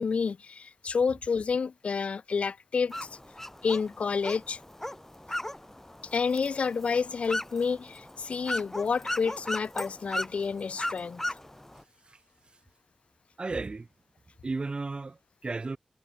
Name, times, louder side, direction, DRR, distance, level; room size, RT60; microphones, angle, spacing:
voice 1, 0.0-3.2 3.6-4.6 6.1-11.4, left 5 dB, 85° left, 0.5 m, -29 dB
sound 1, 2.9-11.8, left 1 dB, 15° left, 0.8 m, -37 dB
voice 2, 13.4-13.9 14.4-15.8, right 3 dB, 55° right, 1.6 m, -34 dB
cardioid pair, 55°, 2 cm